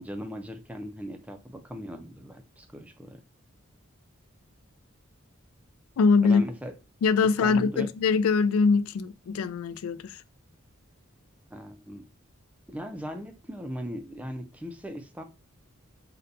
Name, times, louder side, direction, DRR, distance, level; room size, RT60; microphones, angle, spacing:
voice 1, 0.0-3.2 6.2-6.7 7.4-7.9 11.5-12.1 12.7-15.2, equal, 5° right, 0.3 m, -38 dB
voice 2, 6.0-6.4 7.0-10.2, left 5 dB, 85° left, 0.3 m, -23 dB
4.0 x 2.2 x 2.5 m
head